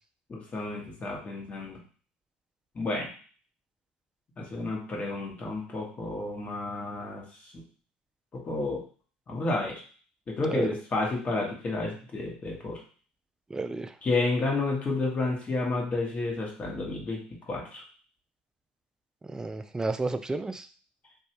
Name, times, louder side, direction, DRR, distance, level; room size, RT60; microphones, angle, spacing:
voice 1, 0.3-1.8 2.7-3.1 4.4-7.2 8.3-8.8 9.3-9.8 10.3-12.8 14.0-17.2 17.5-17.8, left 3 dB, 30° left, -2 dB, 1.3 m, -31 dB
voice 2, 13.5-13.9 19.3-20.7, right 3 dB, 15° right, 10 dB, 0.3 m, -31 dB
3.1 x 2.6 x 2.9 m, 0.42 s
hypercardioid pair, 75°, 5 cm